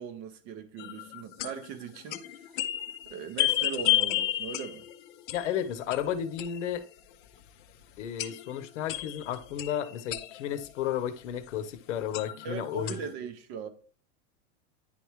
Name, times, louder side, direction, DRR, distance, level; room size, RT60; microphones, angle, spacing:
voice 1, 0.0-2.6 3.1-4.9 12.4-13.7, right 7 dB, 25° right, 0.5 m, -40 dB
sound 1, 0.8-7.0 7.4-7.5 8.0-11.0 11.7-11.8 12.1-13.1, left 16 dB, 45° left, 0.6 m, -32 dB
voice 2, 5.3-6.9 8.0-13.0, left 10 dB, 75° left, 0.9 m, -33 dB
10.0 x 3.4 x 3.1 m
supercardioid pair, 170°, 36 cm